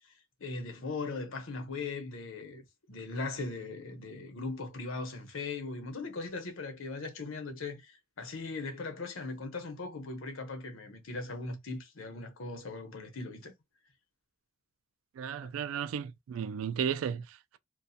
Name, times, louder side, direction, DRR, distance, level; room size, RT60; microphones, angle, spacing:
voice 1, 0.4-2.6 2.9-13.5, left 3 dB, 85° left, 0.8 m, -39 dB
voice 2, 15.2-17.6, right 7 dB, 90° right, 0.3 m, -34 dB
2.4 x 2.3 x 2.6 m
head